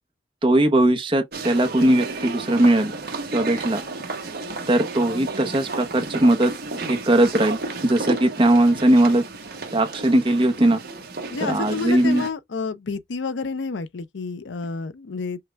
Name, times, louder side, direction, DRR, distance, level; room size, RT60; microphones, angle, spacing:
voice 1, 0.4-2.9 3.3-3.8 4.7-6.5 6.9-9.2 9.7-10.8 11.4-12.2, right 1 dB, 30° right, 0.9 m, -19 dB
sound 1, 1.3-12.3, right 3 dB, 60° right, 1.1 m, -32 dB
voice 2, 11.3-15.4, left 4 dB, 85° left, 0.6 m, -29 dB
5.7 x 2.3 x 3.2 m
head